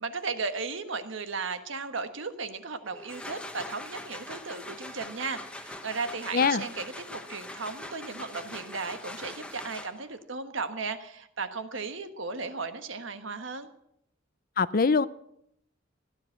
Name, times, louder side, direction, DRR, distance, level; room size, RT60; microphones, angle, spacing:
voice 1, 0.0-13.7, right 4 dB, 75° right, 1.5 m, -35 dB
sound 1, 2.9-10.2, left 1 dB, 5° left, 1.2 m, -42 dB
voice 2, 6.3-6.7 14.6-15.1, left 5 dB, 45° left, 0.6 m, -23 dB
17.0 x 10.5 x 8.0 m
head